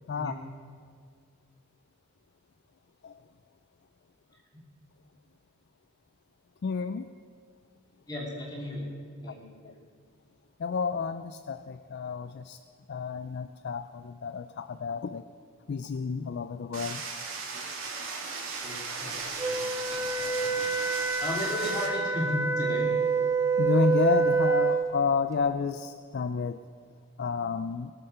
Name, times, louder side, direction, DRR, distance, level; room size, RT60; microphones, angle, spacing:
voice 1, 6.6-7.1 10.6-12.6 12.9-15.2 15.7-17.0 23.6-26.6 27.2-27.9, left 5 dB, 50° left, 11 dB, 0.3 m, -30 dB
voice 2, 8.1-8.9 9.2-9.7 18.6-20.9 21.2-22.9, left 1 dB, 20° left, -3 dB, 3.1 m, -35 dB
sound 1, 16.7-21.9, right 4 dB, 65° right, 2.6 m, -37 dB
Wind instrument woodwind instrument, 19.4-24.9, right 4 dB, 15° right, 0.7 m, -27 dB
18.5 x 8.6 x 6.7 m, 2.1 s
head